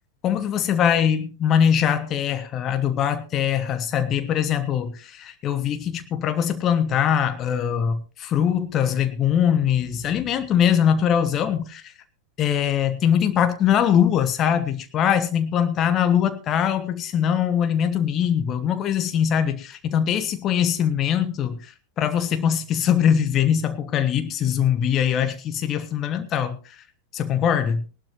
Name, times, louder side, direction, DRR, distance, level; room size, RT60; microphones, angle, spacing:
voice 1, 0.2-11.9 12.4-26.8 27.1-27.8, left 9 dB, 30° left, 9 dB, 1.2 m, -22 dB
20.0 x 12.0 x 3.1 m, 0.34 s
figure-of-eight pair, 90°, 0 cm